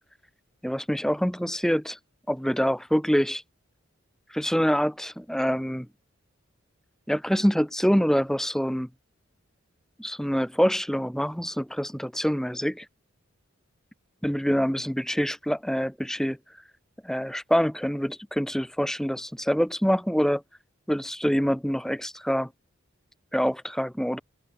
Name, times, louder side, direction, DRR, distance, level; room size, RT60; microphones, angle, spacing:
voice 1, 0.6-2.0 2.3-3.4 4.3-5.9 7.1-8.9 10.0-12.8 14.2-16.4 17.0-20.4 20.9-22.5 23.3-24.2, equal, ahead, 1.6 m, -25 dB
head